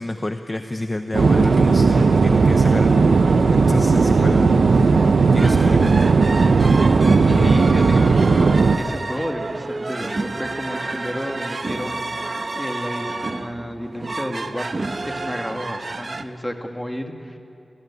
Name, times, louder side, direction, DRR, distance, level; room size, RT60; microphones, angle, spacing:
voice 1, 0.0-3.0 3.3-5.9 7.2-8.0, left 1 dB, 20° left, 7 dB, 0.8 m, -29 dB
sound 1, 1.1-8.8, right 4 dB, 65° right, 0.9 m, -16 dB
sound 2, 5.4-16.2, right 3 dB, 40° right, 1.0 m, -29 dB
voice 2, 7.4-12.0 12.6-17.4, equal, 5° left, 3 dB, 2.0 m, -31 dB
26.5 x 18.0 x 9.7 m, 2.7 s
wide cardioid pair, 135°, 0 cm